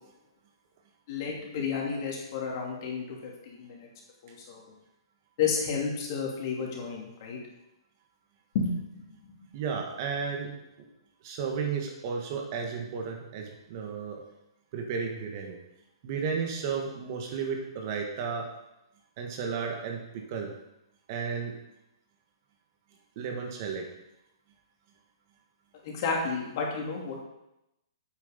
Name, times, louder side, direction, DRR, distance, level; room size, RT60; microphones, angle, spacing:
voice 1, 1.1-3.9 4.2-4.6 5.4-7.4 8.5-9.3 25.8-27.2, left 5 dB, 50° left, -1 dB, 2.9 m, -32 dB
voice 2, 9.5-10.5 11.2-14.2 14.7-15.6 16.0-18.5 19.2-20.5 21.1-21.6 23.2-23.9, right 5 dB, 45° right, 2 dB, 1.9 m, -33 dB
8.4 x 6.5 x 5.4 m, 0.87 s
hypercardioid pair, 140°, 3 cm